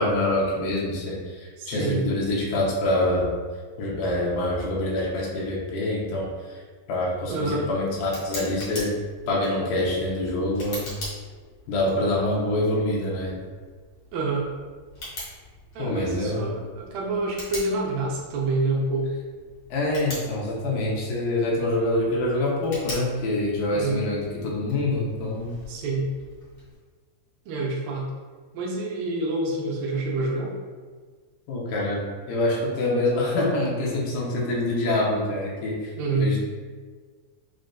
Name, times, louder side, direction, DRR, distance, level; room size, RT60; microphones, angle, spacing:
voice 1, 0.0-3.4 3.8-6.6 6.9-8.9 9.3-10.9 11.7-13.4 15.8-16.5 19.7-25.5 31.5-36.4, left 1 dB, 80° left, -3 dB, 2.3 m, -26 dB
voice 2, 1.6-2.0 7.3-7.7 14.1-14.5 15.8-19.1 23.7-24.1 25.7-26.1 27.5-28.1 28.5-30.5 36.0-36.3, right 2 dB, 80° right, -2 dB, 2.2 m, -27 dB
Tick, 7.1-26.8, left 1 dB, 45° left, 1.7 m, -43 dB
6.2 x 2.4 x 2.2 m, 1.5 s
omnidirectional pair, 4.1 m